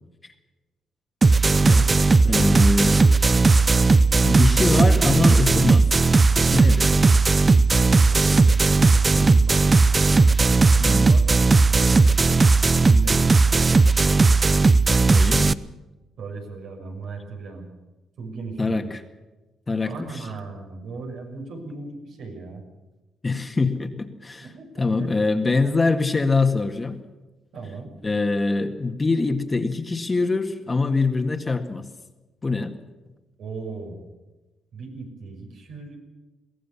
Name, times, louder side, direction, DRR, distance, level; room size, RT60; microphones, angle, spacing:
sound 1, 1.2-15.5, right 3 dB, 30° right, 0.6 m, -17 dB
voice 1, 1.6-3.1 4.2-5.9 6.5-7.0 10.8-11.1 15.1-15.5 18.6-19.0 19.7-20.3 23.2-24.5 24.8-27.0 28.0-31.9 32.4-32.7, left 3 dB, 25° left, 6 dB, 1.9 m, -24 dB
voice 2, 8.0-8.5 8.9-9.8 10.8-11.9 12.8-13.2 16.2-17.6 18.2-18.8 19.9-22.6 24.4-25.1 27.5-27.9 33.4-34.0 34.7-36.0, right 4 dB, 75° right, 1 dB, 6.2 m, -37 dB
22.5 x 16.5 x 7.2 m, 1.1 s
cardioid pair, 90°, 0 cm